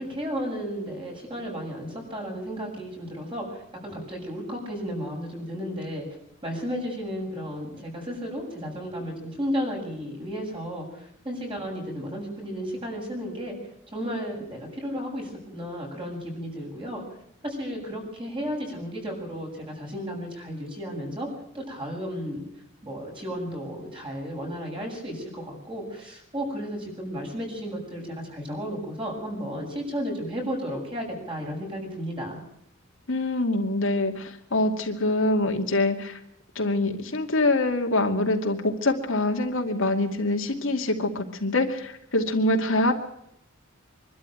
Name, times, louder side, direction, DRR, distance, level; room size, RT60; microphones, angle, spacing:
voice 1, 0.0-6.1 6.4-13.5 13.9-17.0 17.4-21.3 21.5-22.4 22.8-32.4, equal, 25° right, -1 dB, 7.7 m, -33 dB
voice 2, 33.1-36.2 36.6-42.9, left 2 dB, 70° left, 2 dB, 2.4 m, -25 dB
24.5 x 12.5 x 9.3 m, 0.76 s
head